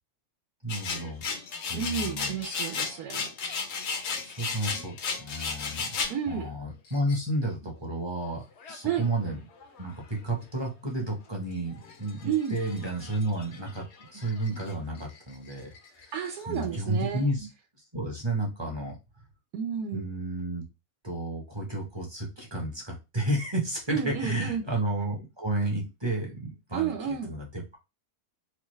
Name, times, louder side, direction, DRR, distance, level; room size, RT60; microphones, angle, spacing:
voice 1, 0.6-1.2 1.7-2.8 4.2-5.9 6.3-9.4 9.8-13.8 14.1-16.1 16.5-17.5 17.9-18.9 19.9-20.6 21.0-27.8, right 1 dB, 20° right, 0.7 m, -32 dB
sound 1, 0.7-6.2 6.9-7.2 8.6-9.3 9.6-10.0 10.6-10.7 11.0-11.1 11.7-14.7 15.0-16.7, left 5 dB, 60° left, 0.8 m, -35 dB
voice 2, 1.7-3.3 6.1-6.5 8.8-9.1 12.2-12.6 16.1-17.2 19.5-20.0 23.9-24.6 26.7-27.3, right 8 dB, 80° right, 1.2 m, -31 dB
4.3 x 2.4 x 3.1 m
omnidirectional pair, 1.6 m